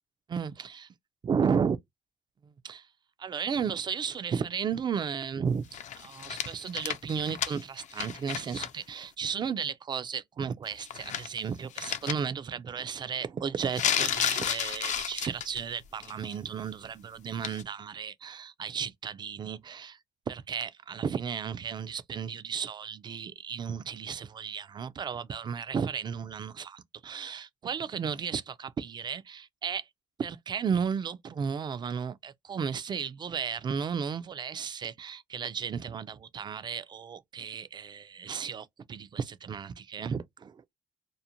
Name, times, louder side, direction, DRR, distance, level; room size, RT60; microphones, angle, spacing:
voice 1, 0.3-0.9 1.2-1.8 2.6-2.9 3.2-20.0 20.3-29.8 30.2-40.7, right 6 dB, 25° right, 0.3 m, -34 dB
sound 1, 5.7-8.7 9.0-9.1 10.7-11.4 11.8-12.1 13.7-15.6 16.0-16.3 17.4-17.6, left 9 dB, 45° left, 0.4 m, -32 dB
2.5 x 2.1 x 2.8 m
cardioid pair, 110°, 17 cm